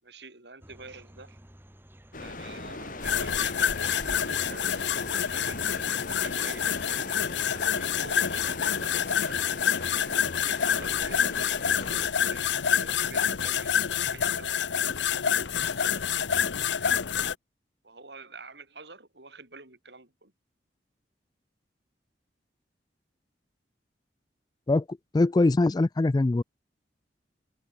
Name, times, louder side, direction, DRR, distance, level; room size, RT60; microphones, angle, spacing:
voice 1, 0.0-1.4 2.2-9.5 10.1-14.9 15.4-17.3 17.8-20.3, right 3 dB, 70° right, 6.9 m, -48 dB
sound 1, 0.6-6.0, equal, 10° right, 1.9 m, -53 dB
sound 2, 2.1-12.1, left 2 dB, 50° left, 2.5 m, -39 dB
sound 3, 3.0-17.3, left 8 dB, 85° left, 0.8 m, -27 dB
voice 2, 25.1-26.4, left 2 dB, 25° left, 0.3 m, -22 dB
head